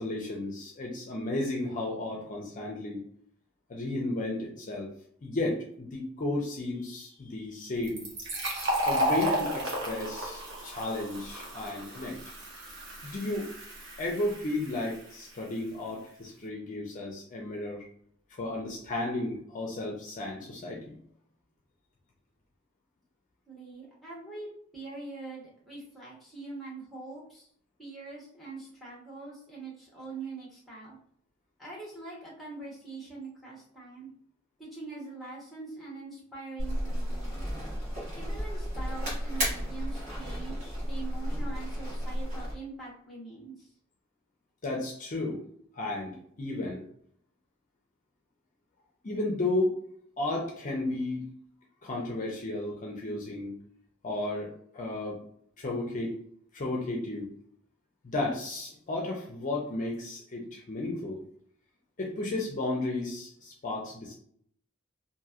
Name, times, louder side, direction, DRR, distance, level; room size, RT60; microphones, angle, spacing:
voice 1, 0.0-3.0 3.7-4.9 5.2-8.0 8.9-12.2 13.0-13.5 14.0-17.9 18.4-21.0 44.6-45.4 45.7-46.9 49.0-49.8 50.2-51.3 51.8-53.5 54.0-54.5 54.7-55.2 55.6-56.1 56.5-57.3 58.0-61.2 62.0-64.1, left 2 dB, 40° left, -1 dB, 0.5 m, -33 dB
Fill (with liquid), 7.8-15.2, equal, 65° right, 0.9 m, -33 dB
voice 2, 23.5-24.5 24.7-27.5 27.8-31.0 31.6-34.1 34.6-37.6 38.1-43.7, right 3 dB, ahead, -5 dB, 1.1 m, -43 dB
sound 1, 36.6-42.5, equal, 40° right, 1.5 m, -33 dB
2.9 x 2.6 x 2.4 m, 0.64 s
head